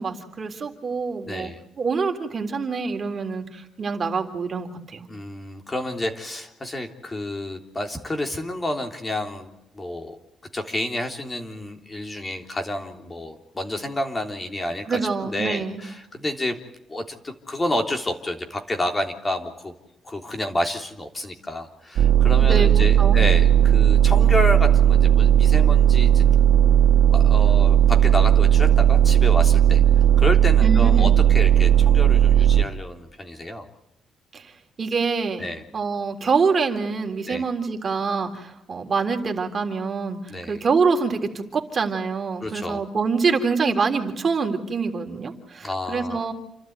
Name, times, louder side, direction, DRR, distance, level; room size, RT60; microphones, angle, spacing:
voice 1, 0.0-1.5 1.8-5.1 14.9-15.8 22.4-23.2 30.6-31.1 34.3-34.5 34.8-35.5 35.7-46.3, right 5 dB, 40° right, 4 dB, 3.6 m, -25 dB
voice 2, 1.3-1.6 5.1-10.2 10.5-16.6 16.9-19.7 20.0-26.2 27.1-29.8 30.2-33.7 35.4-35.6 37.3-37.4 40.3-40.6 42.4-42.8 45.6-46.3, left 1 dB, 25° left, 4 dB, 3.5 m, -29 dB
sound 1, 22.0-32.6, right 10 dB, 85° right, 1.4 m, -16 dB
29.0 x 12.5 x 9.5 m, 0.88 s
cardioid pair, 90°, 0 cm